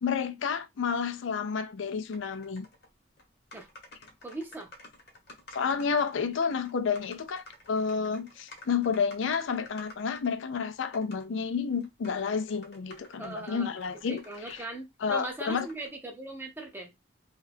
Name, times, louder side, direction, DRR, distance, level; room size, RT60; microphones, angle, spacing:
voice 1, 0.0-2.7 5.5-14.2 15.0-15.7, left 6 dB, 75° left, 0.4 m, -30 dB
sound 1, 2.1-2.9 3.2-3.3 3.5-10.5 10.9-11.3 11.8-14.7 15.0-15.9, left 1 dB, 50° left, 1.0 m, -52 dB
voice 2, 4.2-4.7 13.2-13.7 14.1-16.9, right 2 dB, 10° right, 0.5 m, -39 dB
2.7 x 2.4 x 3.3 m
head